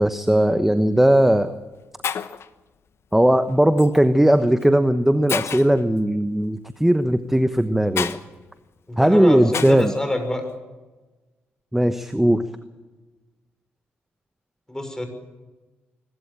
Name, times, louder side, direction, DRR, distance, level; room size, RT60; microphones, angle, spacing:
voice 1, 0.0-1.5 3.1-8.2 9.0-9.9 11.7-12.4, right 1 dB, 5° right, 10 dB, 1.1 m, -18 dB
Shatter, 0.8-1.0 1.7-1.8 2.0-2.5 3.8-4.0 4.6-4.7 5.3-5.8 8.0-8.2 9.5-9.9, left 7 dB, 60° left, 1.0 m, -29 dB
voice 2, 8.9-10.4 14.7-15.1, left 1 dB, 10° left, 6 dB, 6.2 m, -27 dB
23.0 x 13.0 x 8.8 m, 1.2 s
supercardioid pair, 60°, 5 cm